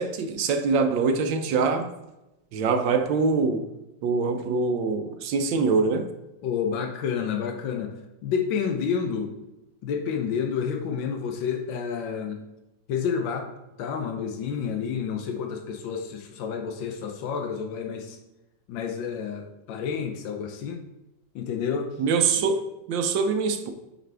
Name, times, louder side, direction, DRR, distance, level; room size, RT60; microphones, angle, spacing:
voice 1, 0.0-1.9 2.5-3.6 4.0-6.1 22.0-22.6 22.9-23.7, right 4 dB, 80° right, 1.4 m, -24 dB
voice 2, 6.4-7.9 8.2-9.3 9.8-12.4 12.9-13.5 13.8-18.2 18.7-20.8 21.3-21.9, left 7 dB, 90° left, 1.5 m, -29 dB
7.4 x 5.1 x 3.4 m
omnidirectional pair, 2.0 m